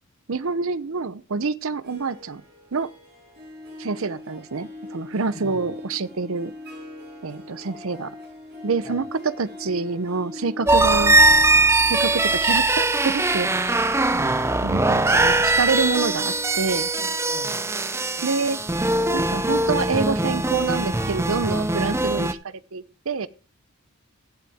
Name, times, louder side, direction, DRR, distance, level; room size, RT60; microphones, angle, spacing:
voice 1, 0.3-2.4 2.7-2.9 3.8-6.5 7.2-8.1 8.6-11.2 11.9-13.9 14.6-16.9 18.2-18.6 19.1-23.3, right 4 dB, 70° right, 0.7 m, -27 dB
Harp, 1.7-15.6, left 2 dB, 50° right, 5.9 m, -41 dB
voice 2, 5.3-5.6 8.8-9.0 14.1-14.5 16.9-17.6, equal, 35° left, 3.5 m, -40 dB
sound 1, 10.7-22.3, right 2 dB, 10° right, 0.5 m, -21 dB
15.5 x 8.2 x 3.5 m
head